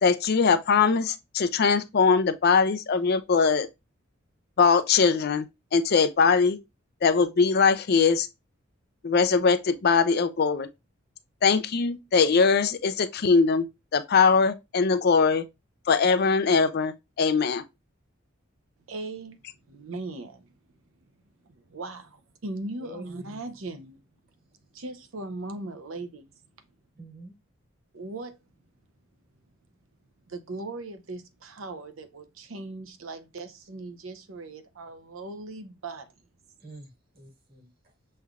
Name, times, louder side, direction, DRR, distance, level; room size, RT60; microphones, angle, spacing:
voice 1, 0.0-3.7 4.6-5.5 5.7-6.6 7.0-8.3 9.0-10.7 11.4-13.7 13.9-15.4 15.9-17.6, left 5 dB, 50° left, 0.4 m, -21 dB
voice 2, 18.9-19.4 19.7-20.5 21.5-24.0 24.7-26.3 27.9-28.4 30.3-36.1, right 2 dB, 75° right, 0.7 m, -38 dB
voice 3, 22.8-23.4 26.9-27.3 36.6-37.9, right 1 dB, 50° right, 1.6 m, -46 dB
6.6 x 3.2 x 2.4 m
head